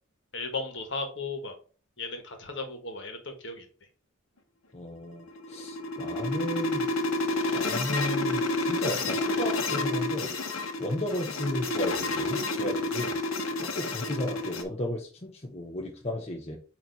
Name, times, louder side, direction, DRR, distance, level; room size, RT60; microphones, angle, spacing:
voice 1, 0.3-1.5 2.0-3.6, left 3 dB, 60° left, 5 dB, 1.4 m, -35 dB
voice 2, 4.7-6.9 7.5-10.3 10.8-13.2 13.6-16.6, left 1 dB, 30° left, 0 dB, 0.9 m, -34 dB
sound 1, 5.2-14.6, left 2 dB, 80° left, 1.1 m, -29 dB
8.7 x 2.9 x 4.0 m, 0.39 s
head